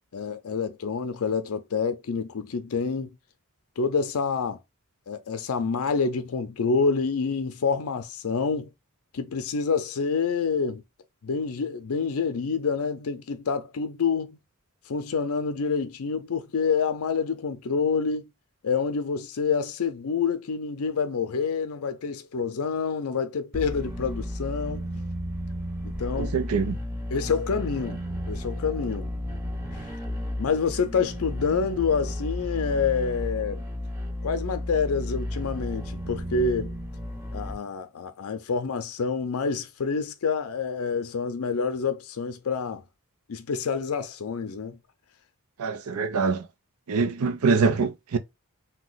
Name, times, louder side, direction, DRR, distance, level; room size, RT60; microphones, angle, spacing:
voice 1, 0.1-3.1 3.8-4.6 5.1-8.7 9.1-10.8 11.2-14.4 14.9-18.3 18.6-24.9 25.8-26.3 27.1-28.0 28.3-29.1 30.4-33.7 34.2-36.7 37.3-42.8 43.3-44.8, left 5 dB, 75° left, 0.5 m, -27 dB
sound 1, 23.5-37.5, left 1 dB, 15° right, 0.8 m, -33 dB
voice 2, 26.2-26.8 45.6-46.5 46.9-48.2, right 4 dB, 80° right, 0.5 m, -24 dB
2.9 x 2.2 x 3.9 m
head